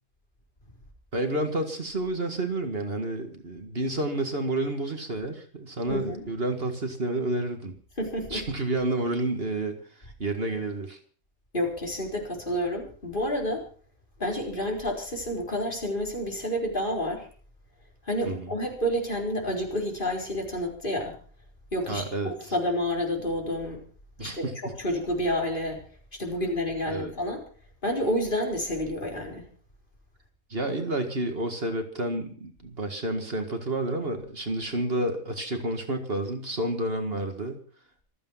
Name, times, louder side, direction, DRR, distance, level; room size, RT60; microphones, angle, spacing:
voice 1, 1.1-7.7 8.3-11.0 18.2-18.5 21.9-22.5 24.2-24.7 26.9-27.1 30.5-37.6, right 2 dB, 50° right, 6 dB, 2.2 m, -30 dB
voice 2, 5.9-6.2 8.0-8.4 11.5-13.6 14.2-17.3 18.1-21.2 21.7-23.8 24.2-25.8 26.2-27.4 27.8-29.5, equal, 40° left, 1 dB, 4.7 m, -29 dB
26.0 x 8.8 x 5.8 m, 0.42 s
omnidirectional pair, 1.3 m